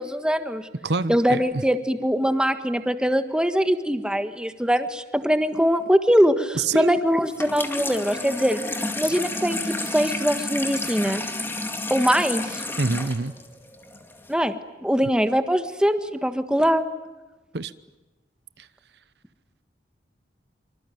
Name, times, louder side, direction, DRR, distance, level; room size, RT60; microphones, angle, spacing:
voice 1, 0.0-0.7 1.1-8.6 9.0-11.2 11.9-12.6 14.3-14.5 14.8-16.8, equal, 5° right, 8 dB, 1.5 m, -22 dB
voice 2, 0.8-1.6 6.5-7.0 12.8-13.3 17.5-17.7 18.6-18.7, right 3 dB, 70° right, 14 dB, 0.9 m, -26 dB
Water tap faucet / Sink (filling or washing), 7.3-14.3, left 2 dB, 15° left, 2.2 m, -31 dB
25.5 x 25.5 x 9.3 m, 1.1 s
head